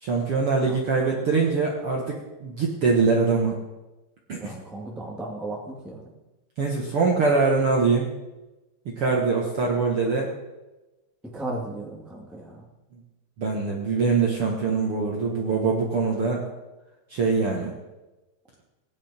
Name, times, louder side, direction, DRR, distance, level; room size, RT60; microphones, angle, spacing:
voice 1, 0.0-3.5 4.3-4.5 6.6-8.1 9.0-10.3 13.4-16.4 17.1-17.7, right 4 dB, 55° right, -1 dB, 1.6 m, -23 dB
voice 2, 4.4-6.0 11.3-12.6, right 2 dB, ahead, -1 dB, 0.8 m, -35 dB
18.0 x 10.5 x 4.4 m, 1.1 s
omnidirectional pair, 4.6 m